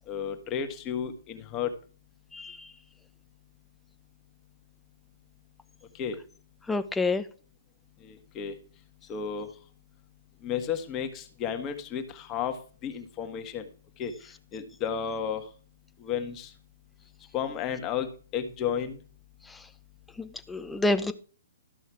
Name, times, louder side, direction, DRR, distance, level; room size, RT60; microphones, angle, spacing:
voice 1, 0.1-1.7 5.9-6.2 8.0-8.5 9.1-9.5 10.4-12.6 12.8-13.7 14.0-14.1 14.5-15.5 16.0-16.5 17.3-19.0, left 8 dB, 25° left, 6 dB, 1.5 m, -32 dB
voice 2, 6.7-7.2 20.2-21.1, left 2 dB, 5° left, 9 dB, 0.7 m, -28 dB
13.0 x 5.5 x 4.8 m, 0.41 s
hypercardioid pair, 130°, 0 cm